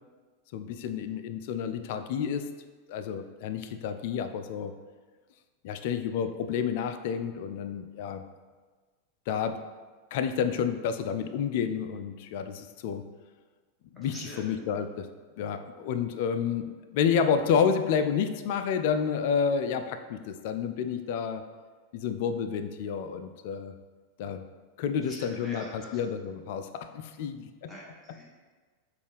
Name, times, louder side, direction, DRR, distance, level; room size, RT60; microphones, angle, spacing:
voice 1, 0.5-2.5 2.9-4.7 5.6-8.2 9.3-9.6 10.1-13.0 13.9-15.1 15.4-21.4 21.9-23.7 24.2-24.4 24.8-27.7, left 7 dB, 50° left, 9 dB, 0.3 m, -30 dB
voice 2, 14.0-14.4 25.0-25.9 27.7-28.2, equal, ahead, -7 dB, 1.4 m, -44 dB
6.2 x 2.5 x 3.4 m, 1.4 s
figure-of-eight pair, 90°, 0 cm